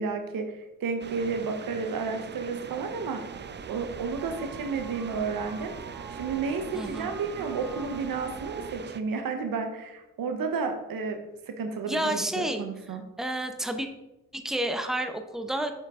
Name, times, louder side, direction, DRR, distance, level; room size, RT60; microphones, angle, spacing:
voice 1, 0.0-3.3 3.7-11.2 11.5-13.0, right 5 dB, 85° right, 6 dB, 1.0 m, -32 dB
sound 1, 1.0-9.0, right 6 dB, 35° right, 0.5 m, -42 dB
sound 2, 3.3-8.7, right 4 dB, 70° right, 1.2 m, -45 dB
voice 2, 6.7-7.1 11.9-12.6 13.2-13.9 14.3-15.7, right 1 dB, ahead, 6 dB, 0.9 m, -30 dB
7.1 x 6.3 x 3.7 m, 0.96 s
cardioid pair, 55°, 33 cm